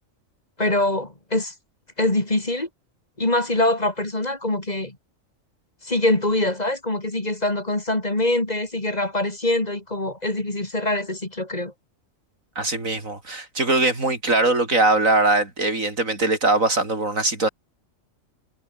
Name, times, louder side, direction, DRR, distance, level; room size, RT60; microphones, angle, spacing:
voice 1, 0.6-1.5 2.0-2.7 3.2-5.0 5.8-11.7, left 1 dB, 30° left, 3.1 m, -24 dB
voice 2, 12.6-17.5, right 2 dB, 85° right, 5.2 m, -21 dB
omnidirectional pair, 1.4 m